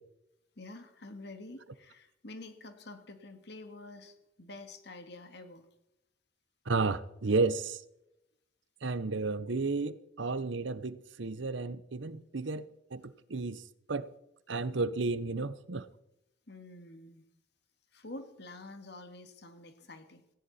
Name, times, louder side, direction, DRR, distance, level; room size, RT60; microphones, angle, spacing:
voice 1, 0.6-5.7 16.5-17.3 17.9-20.2, left 2 dB, 60° left, 2.0 m, -48 dB
voice 2, 6.7-7.8 8.8-13.6 13.9-14.1 14.5-15.9, right 3 dB, 70° right, 0.8 m, -32 dB
18.0 x 16.0 x 4.3 m
head